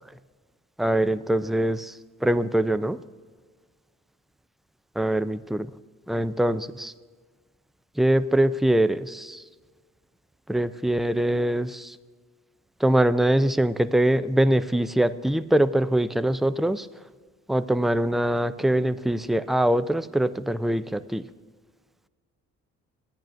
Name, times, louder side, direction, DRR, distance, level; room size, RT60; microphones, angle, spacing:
voice 1, 0.8-1.9 2.2-3.0 5.0-5.7 6.1-6.9 8.0-9.4 10.5-11.9 12.8-16.9 17.5-21.2, right 1 dB, ahead, 13 dB, 0.3 m, -23 dB
15.5 x 10.5 x 2.5 m, 1.5 s
cardioid pair, 90°, 30 cm